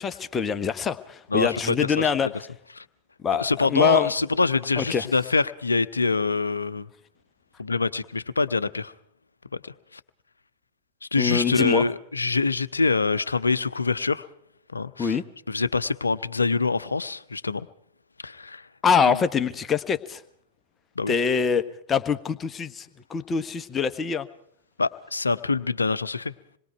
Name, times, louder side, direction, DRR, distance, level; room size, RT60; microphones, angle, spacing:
voice 1, 0.0-2.3 3.2-4.1 4.8-5.0 11.2-11.8 15.0-15.2 18.8-20.2 21.1-24.3, left 6 dB, 20° left, 10 dB, 1.2 m, -24 dB
voice 2, 1.3-2.1 2.8-2.9 3.3-6.9 7.6-8.9 9.5-10.0 11.1-14.3 14.7-15.2 15.5-17.7 18.2-18.7 19.1-19.2 21.0-21.2 24.8-26.3, left 4 dB, 80° left, 14 dB, 0.7 m, -25 dB
26.5 x 21.5 x 4.6 m, 0.66 s
figure-of-eight pair, 90°, 0 cm